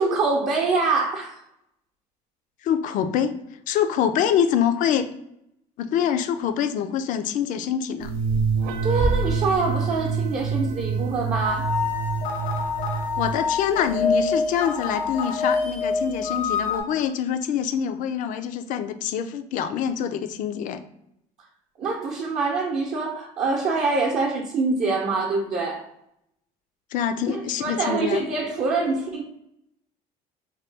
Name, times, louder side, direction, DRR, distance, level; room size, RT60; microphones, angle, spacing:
voice 1, 0.0-1.4 8.8-11.7 21.8-25.8 27.2-29.2, right 3 dB, 50° right, -2 dB, 0.6 m, -25 dB
voice 2, 2.6-3.4 3.7-5.1 5.8-8.1 13.2-20.8 26.9-28.2, left 8 dB, 60° left, 10 dB, 0.4 m, -25 dB
sound 1, 8.0-13.3, right 5 dB, 85° right, 0.4 m, -26 dB
sound 2, 11.4-16.8, left 5 dB, 85° left, 0.9 m, -26 dB
3.0 x 2.2 x 3.2 m, 0.78 s
cardioid pair, 115°, 15 cm